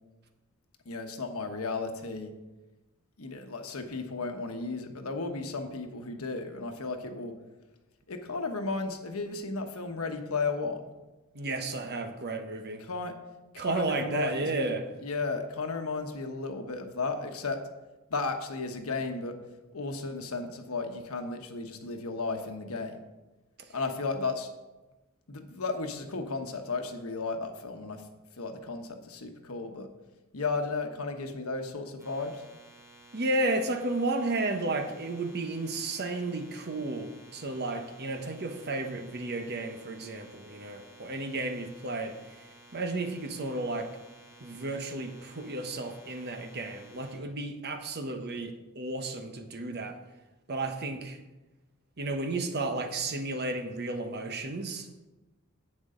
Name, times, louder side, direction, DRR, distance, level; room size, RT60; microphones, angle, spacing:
voice 1, 0.8-2.3 3.2-7.4 8.1-10.9 12.8-13.1 13.5-14.7 15.0-17.6 18.1-19.4 19.7-23.0 23.7-24.5 25.3-28.0 28.4-29.9 30.3-32.4, left 3 dB, 85° left, 5 dB, 1.2 m, -34 dB
voice 2, 11.3-12.8 13.6-14.9 23.6-23.7 33.1-42.2 42.7-44.0 44.4-50.0 50.5-51.2 52.0-55.1, right 2 dB, 50° right, 6 dB, 1.1 m, -33 dB
sound 1, 32.0-47.2, right 1 dB, 15° right, 2.9 m, -55 dB
11.0 x 8.8 x 3.8 m, 1.1 s
head